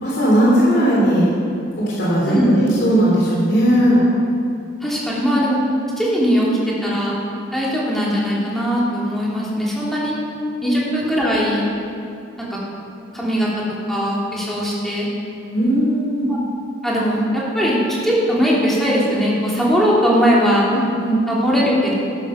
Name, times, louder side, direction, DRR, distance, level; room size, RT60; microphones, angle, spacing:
voice 1, 0.0-1.3 1.8-2.4 2.8-4.0 10.6-10.7 15.5-16.3 20.7-21.2, equal, 55° left, -7 dB, 3.1 m, -17 dB
voice 2, 2.3-2.8 4.8-5.6 6.0-6.5 6.8-7.2 7.5-10.1 10.6-11.7 12.5-12.6 13.1-13.5 13.9-15.1 16.3-16.4 16.8-17.8 18.0-20.6 21.3-21.9, equal, ahead, -6 dB, 2.8 m, -19 dB
13.5 x 11.0 x 5.7 m, 2.5 s
head